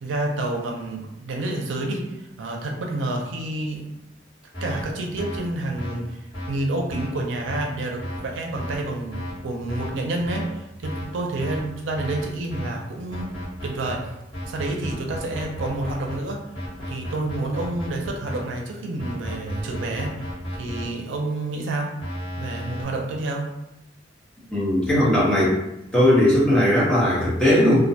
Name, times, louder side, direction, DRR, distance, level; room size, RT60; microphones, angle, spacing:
voice 1, 0.0-3.9 4.6-13.3 13.6-14.2 14.5-16.5 16.9-20.3 20.6-22.0 22.4-23.6, right 2 dB, 90° right, 1 dB, 0.5 m, -29 dB
sound 1, 4.5-4.8 5.2-5.4 5.8-5.9 6.3-6.5 6.9-7.1 7.5-7.6 8.0-8.2 8.6-8.8 9.1-9.3 9.7-9.9 10.3-10.4 10.8-11.0 11.4-11.6 12.0-12.2 12.5-12.7 13.1-13.9 14.3-16.1 16.5-18.4 19.0-20.8 22.0-22.8, equal, 30° left, 1.4 m, -32 dB
voice 2, 24.5-25.6 25.9-27.9, left 1 dB, 5° left, -8 dB, 0.8 m, -18 dB
2.4 x 2.1 x 2.7 m, 0.88 s
head